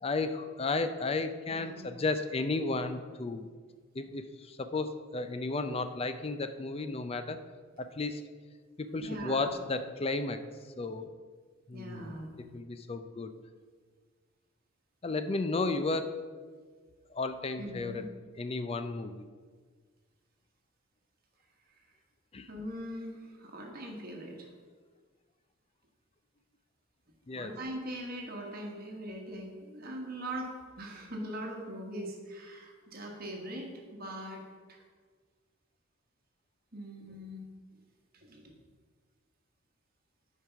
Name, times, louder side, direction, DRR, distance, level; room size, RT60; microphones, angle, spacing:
voice 1, 0.0-3.5 3.9-7.4 7.8-8.3 8.8-10.4 10.8-11.1 11.7-12.1 12.5-13.3 15.0-16.2 17.1-18.0 18.4-19.2 22.3-22.5 27.3-27.5, left 3 dB, 30° left, 9 dB, 0.4 m, -33 dB
voice 2, 1.5-1.8 9.0-9.5 11.7-12.3 17.6-18.1 21.7-21.8 22.5-24.5 27.3-34.4 34.7-34.8 36.7-37.4 38.1-38.5, right 1 dB, 45° right, 1 dB, 1.4 m, -41 dB
8.5 x 4.6 x 5.8 m, 1.6 s
head